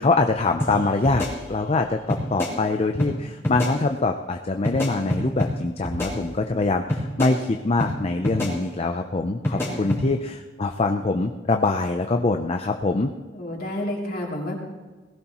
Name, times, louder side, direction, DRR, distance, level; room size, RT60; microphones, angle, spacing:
voice 1, 0.0-13.1, left 3 dB, 30° left, 5 dB, 0.5 m, -24 dB
sound 1, 0.6-0.7 1.0-1.8 2.1-2.5 3.0-3.1 3.4-3.7 4.6-5.5 5.8-6.6 6.9-7.3 7.8-7.9 8.2-8.5 9.4-10.0, left 1 dB, 15° left, 3.3 m, -27 dB
voice 2, 9.5-9.9 13.3-14.6, left 1 dB, 50° left, -2 dB, 3.0 m, -31 dB
18.5 x 16.0 x 3.0 m, 1.3 s
head